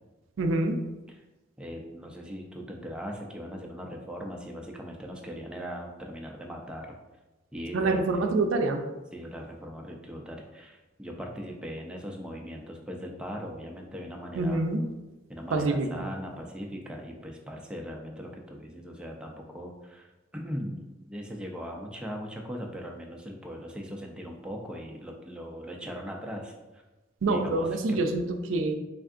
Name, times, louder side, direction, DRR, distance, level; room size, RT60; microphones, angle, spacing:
voice 1, 0.4-0.8 7.7-8.8 14.4-14.8 15.5-16.0 27.2-28.2 28.5-28.8, right 2 dB, 80° right, 5 dB, 0.4 m, -26 dB
voice 2, 1.6-6.9 7.5-8.3 9.1-14.6 15.3-26.8 27.3-28.0, equal, 5° right, 0 dB, 0.4 m, -39 dB
3.6 x 3.4 x 2.5 m, 1.1 s
head